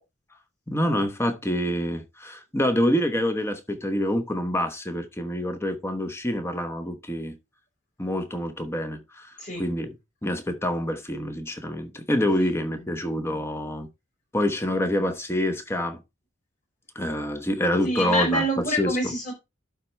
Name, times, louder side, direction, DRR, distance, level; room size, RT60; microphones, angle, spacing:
voice 1, 0.7-7.4 8.0-9.3 9.6-9.9 10.2-13.9 14.3-16.0 16.9-19.0, equal, 10° left, 0.9 m, -26 dB
voice 2, 17.8-19.3, equal, 35° left, 4.4 m, -26 dB
12.0 x 4.3 x 3.3 m
head